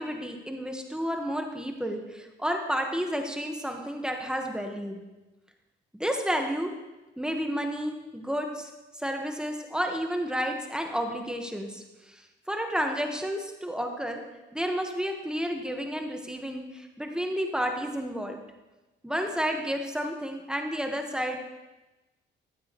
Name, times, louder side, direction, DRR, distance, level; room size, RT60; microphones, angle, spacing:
voice 1, 0.0-5.0 5.9-6.7 7.2-8.7 9.0-14.2 14.5-18.4 19.0-21.4, equal, 5° right, 3 dB, 1.3 m, -31 dB
13.0 x 8.7 x 3.0 m, 1.1 s
cardioid pair, 90°, 20 cm